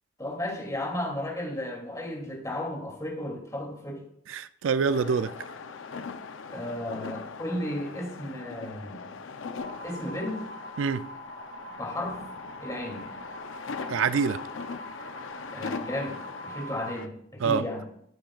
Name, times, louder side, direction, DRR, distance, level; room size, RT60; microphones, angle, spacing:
voice 1, 0.2-4.0 6.5-9.0 9.8-10.4 11.8-12.2 12.6-13.1 15.5-16.2 16.4-17.8, left 1 dB, 20° left, 2.6 m, -34 dB
voice 2, 4.3-5.3 10.8-11.0 13.9-14.4 17.4-17.6, right 5 dB, 85° right, 0.4 m, -25 dB
sound 1, 4.9-17.1, left 4 dB, 90° left, 0.6 m, -40 dB
sound 2, 9.6-16.9, right 1 dB, 60° left, 3.6 m, -44 dB
13.0 x 8.8 x 2.4 m
head